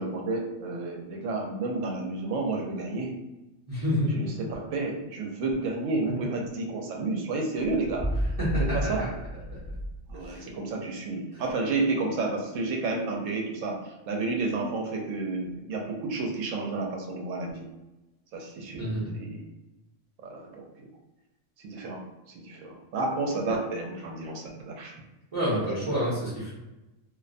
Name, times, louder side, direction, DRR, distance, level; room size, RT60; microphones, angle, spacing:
voice 1, 0.0-3.1 4.1-8.1 8.6-9.1 10.1-17.7 18.3-18.9 19.1-19.4 20.2-20.9 21.6-24.9, right 3 dB, 75° right, 1 dB, 0.9 m, -31 dB
voice 2, 3.7-4.4 8.4-9.1 10.2-10.4 18.7-19.1 25.3-26.5, equal, 35° right, -10 dB, 0.6 m, -28 dB
sound 1, 7.6-10.4, equal, 60° left, 0.3 m, -32 dB
2.5 x 2.1 x 2.5 m, 0.99 s
omnidirectional pair, 1.4 m